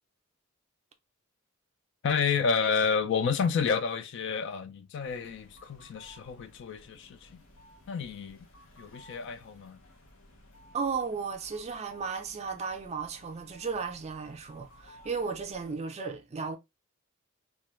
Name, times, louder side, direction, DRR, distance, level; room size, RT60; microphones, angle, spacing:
voice 1, 2.0-7.3 7.9-8.5 8.8-9.8, left 6 dB, 60° left, 0.3 m, -30 dB
sound 1, 5.0-15.8, equal, 80° left, 0.8 m, -56 dB
voice 2, 10.7-16.6, right 5 dB, 30° right, 0.4 m, -35 dB
2.4 x 2.1 x 3.0 m
head